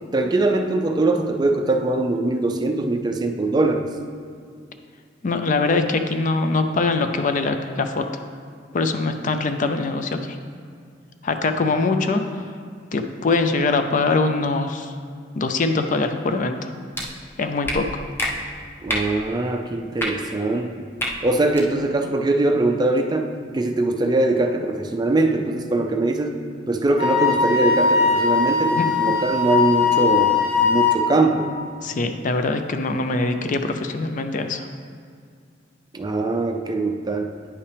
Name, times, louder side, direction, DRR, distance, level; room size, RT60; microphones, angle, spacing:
voice 1, 0.1-3.9 18.8-20.8 21.2-26.4 26.7-31.5 35.9-37.3, right 2 dB, 25° right, 4 dB, 0.4 m, -22 dB
voice 2, 5.2-8.2 8.7-10.4 11.2-12.4 12.9-14.9 15.4-16.7 17.4-18.0 28.8-28.9 31.8-34.7, left 3 dB, 45° left, 7 dB, 0.4 m, -23 dB
sound 1, 16.9-17.1 17.6-17.8 18.2-18.3 18.9-19.1 19.9-20.1 21.0-21.1 21.5-21.7, equal, 15° left, 0.7 m, -25 dB
Wind instrument woodwind instrument, 27.0-31.0, left 5 dB, 85° left, 1.9 m, -20 dB
9.5 x 5.6 x 3.3 m, 2.2 s
head